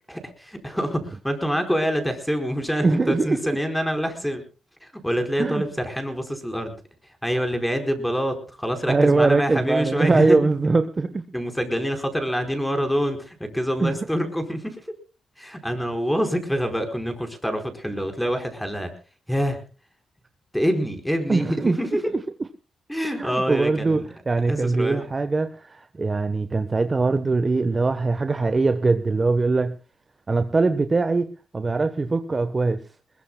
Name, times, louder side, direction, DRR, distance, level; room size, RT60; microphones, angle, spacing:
voice 1, 0.1-4.4 4.8-6.8 7.2-10.4 11.3-14.9 15.4-18.9 19.3-19.6 20.5-22.1 22.9-24.1 24.5-25.1, equal, 5° left, 6 dB, 4.6 m, -26 dB
voice 2, 2.8-3.4 5.4-5.6 8.9-11.2 13.8-13.9 21.3-21.8 23.2-29.8 30.3-31.3 31.5-32.8, right 3 dB, 30° right, 9 dB, 1.1 m, -22 dB
21.5 x 21.5 x 2.3 m, 0.33 s
cardioid pair, 85°, 0 cm